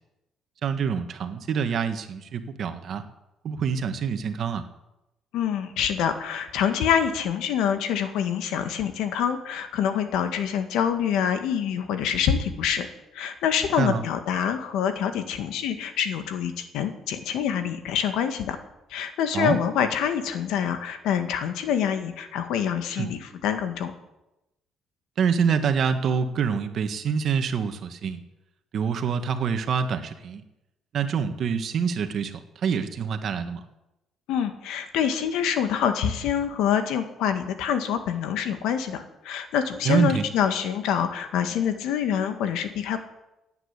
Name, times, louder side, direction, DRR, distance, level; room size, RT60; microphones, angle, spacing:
voice 1, 0.6-3.0 3.4-4.7 13.8-14.0 19.3-19.6 23.0-23.1 25.2-28.2 28.7-30.4 30.9-32.3 32.6-33.6 39.8-40.2, right 6 dB, 50° right, 8 dB, 1.7 m, -26 dB
voice 2, 5.3-12.9 13.1-18.6 18.9-23.9 34.3-43.0, left 8 dB, 85° left, 8 dB, 1.9 m, -26 dB
17.0 x 9.3 x 8.3 m, 0.93 s
cardioid pair, 125°, 0 cm